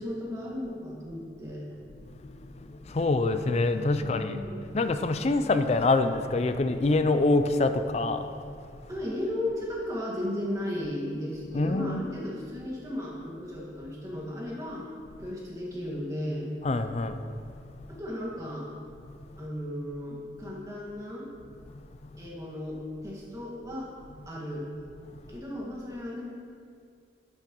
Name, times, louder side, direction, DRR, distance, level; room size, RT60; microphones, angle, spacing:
voice 1, 0.0-1.7 4.0-4.6 8.9-14.8 15.2-16.5 17.9-18.7 19.4-21.3 22.2-23.9 24.3-24.7 25.3-26.2, left 1 dB, 20° right, -4 dB, 1.7 m, -35 dB
voice 2, 1.9-4.4 4.7-8.4 8.9-9.0 11.5-12.0 16.6-17.4 19.1-19.2 24.2-24.3, left 2 dB, 35° left, 9 dB, 0.4 m, -26 dB
10.5 x 8.7 x 3.0 m, 2.3 s
head